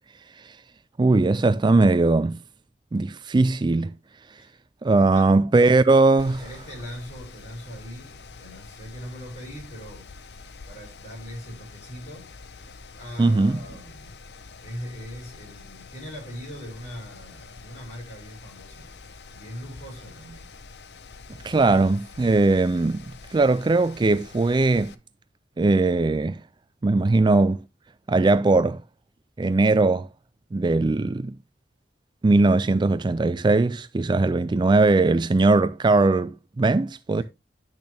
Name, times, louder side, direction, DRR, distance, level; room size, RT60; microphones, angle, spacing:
voice 1, 1.0-2.4 2.9-3.9 4.8-6.4 13.2-13.6 21.4-23.0 23.3-24.9 25.6-26.4 26.8-27.6 28.1-28.8 29.4-30.1 30.5-31.3 32.2-37.2, right 3 dB, 25° right, 0.4 m, -20 dB
voice 2, 5.0-5.4 5.6-5.8 6.2-10.1 10.7-12.6 12.9-14.2 14.6-18.9 19.3-20.5 37.1-37.2, equal, 40° left, 6.6 m, -41 dB
Mechanical fan, 6.2-24.9, left 4 dB, 70° left, 0.8 m, -46 dB
10.5 x 6.4 x 3.3 m
head